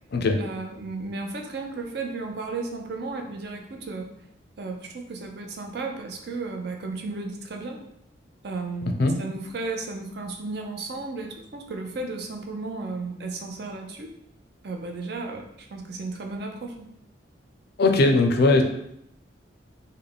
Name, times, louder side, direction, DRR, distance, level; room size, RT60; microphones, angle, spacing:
voice 1, 0.4-4.1 4.6-7.8 8.4-14.1 14.6-16.9, right 3 dB, 60° right, 3 dB, 0.5 m, -34 dB
voice 2, 17.8-18.6, left 2 dB, 60° left, 4 dB, 0.4 m, -19 dB
3.3 x 2.2 x 3.8 m, 0.75 s
head